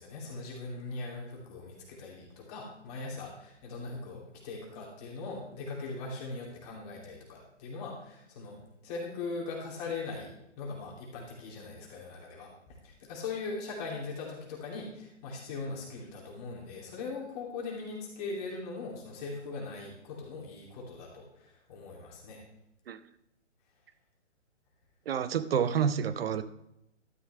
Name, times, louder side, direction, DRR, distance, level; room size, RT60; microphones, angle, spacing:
voice 1, 0.0-22.4, left 3 dB, 30° left, -3 dB, 2.8 m, -40 dB
voice 2, 25.1-26.4, right 8 dB, 55° right, 13 dB, 0.8 m, -28 dB
12.0 x 9.4 x 3.3 m, 0.82 s
hypercardioid pair, 145°, 36 cm